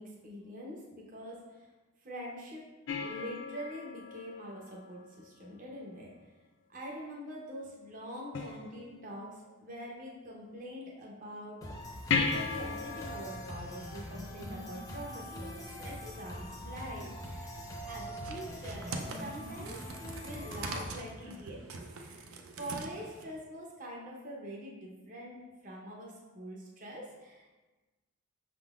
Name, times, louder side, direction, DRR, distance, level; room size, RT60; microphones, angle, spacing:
voice 1, 0.0-1.7 2.0-2.6 3.0-6.1 6.7-11.7 12.1-19.9 20.2-21.6 21.9-22.2 22.5-27.4, equal, 35° right, -3 dB, 0.7 m, -44 dB
sound 1, 2.9-5.5 8.3-9.3 12.1-15.0 18.1-18.2, left 4 dB, 60° left, 0.4 m, -37 dB
sound 2, 11.6-20.9, equal, 15° left, 0.6 m, -43 dB
sound 3, 18.2-23.4, right 3 dB, 80° right, 0.5 m, -44 dB
5.8 x 3.7 x 2.4 m, 1.2 s
head